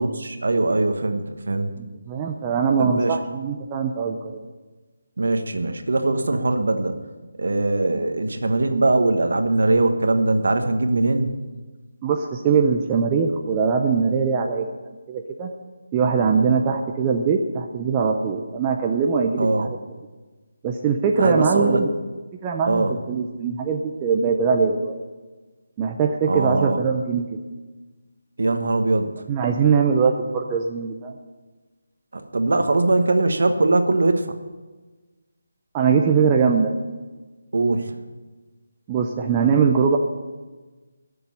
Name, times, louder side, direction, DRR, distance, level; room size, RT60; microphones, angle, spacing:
voice 1, 0.0-1.7 2.8-3.2 5.2-7.0 7.4-11.3 19.4-19.7 21.2-21.8 22.7-22.9 26.3-26.8 28.4-29.1 32.1-34.3 37.5-37.9, right 2 dB, 60° right, 7 dB, 1.2 m, -21 dB
voice 2, 1.8-4.3 12.0-14.7 15.1-15.5 15.9-19.8 20.6-21.9 22.4-25.0 25.8-27.4 29.3-31.1 35.7-36.7 38.9-40.0, right 5 dB, 10° right, 2 dB, 0.4 m, -21 dB
11.5 x 6.9 x 9.7 m, 1.3 s
hypercardioid pair, 180°, 0 cm